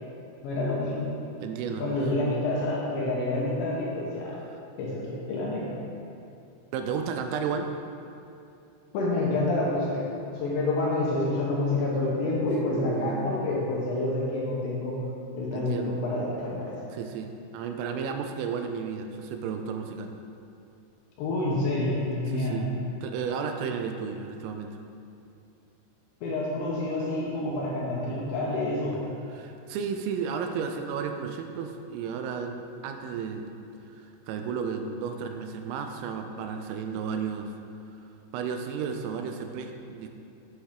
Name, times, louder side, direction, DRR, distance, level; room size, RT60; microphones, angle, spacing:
voice 1, 0.4-1.1 1.8-4.3 4.8-5.7 8.9-10.0 10.4-15.0 15.3-16.7 21.2-22.6 26.2-29.0, left 2 dB, 75° left, -5 dB, 3.0 m, -28 dB
voice 2, 1.4-1.8 4.5-4.6 6.7-7.7 12.7-13.3 15.5-15.9 16.9-20.1 22.3-22.7 23.0-24.8 29.3-33.5 34.3-37.5 38.3-40.1, right 6 dB, 85° right, 5 dB, 3.2 m, -33 dB
8.9 x 7.1 x 3.6 m, 2.7 s
omnidirectional pair, 5.9 m